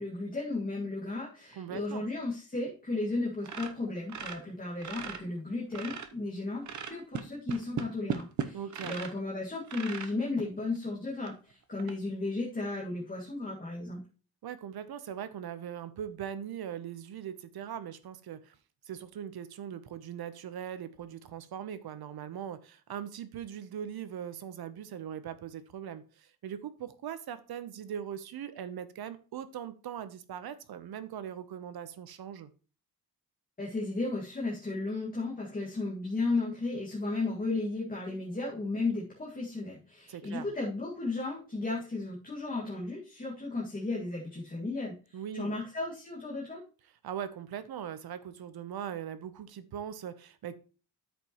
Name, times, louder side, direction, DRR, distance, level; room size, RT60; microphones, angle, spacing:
voice 1, 0.0-14.0 33.6-46.6, left 3 dB, 20° left, -5 dB, 2.1 m, -34 dB
voice 2, 1.6-2.0 8.5-8.9 14.4-18.5 18.9-32.5 40.1-40.5 45.1-45.5 47.0-50.5, right 9 dB, 75° right, 13 dB, 0.9 m, -40 dB
sound 1, 3.4-5.2 5.6-6.2 6.6-9.2 9.7-10.1 10.8-10.9 11.2-11.3 11.8-11.9, right 7 dB, 50° right, 0.8 m, -37 dB
13.0 x 5.2 x 3.0 m, 0.36 s
wide cardioid pair, 170°, 38 cm